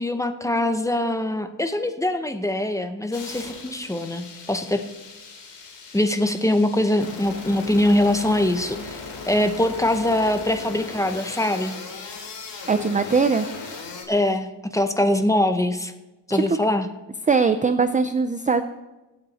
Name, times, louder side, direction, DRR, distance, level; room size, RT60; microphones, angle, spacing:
voice 1, 0.0-4.8 5.9-9.0 9.3-11.8 14.1-15.9 16.3-16.9, left 1 dB, 5° left, 8 dB, 0.7 m, -23 dB
sound 1, 3.1-14.0, left 4 dB, 70° left, 3.1 m, -38 dB
voice 2, 12.7-13.5 16.3-16.4 17.3-18.6, right 5 dB, 20° right, 9 dB, 0.4 m, -20 dB
24.5 x 8.3 x 4.2 m, 1.1 s
wide cardioid pair, 155°, 43 cm